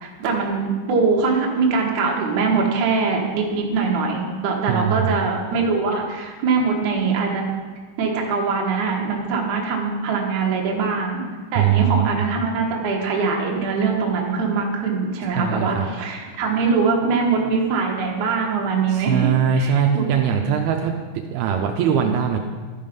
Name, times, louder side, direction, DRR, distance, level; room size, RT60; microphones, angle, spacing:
voice 1, 0.0-7.4 8.0-11.3 11.5-20.1, right 4 dB, 65° right, 0 dB, 2.0 m, -22 dB
voice 2, 4.7-5.2 11.6-12.2 15.4-15.9 18.9-20.9 21.3-22.4, right 8 dB, 90° right, 3 dB, 2.2 m, -21 dB
12.5 x 5.6 x 5.2 m, 1.4 s
omnidirectional pair, 5.1 m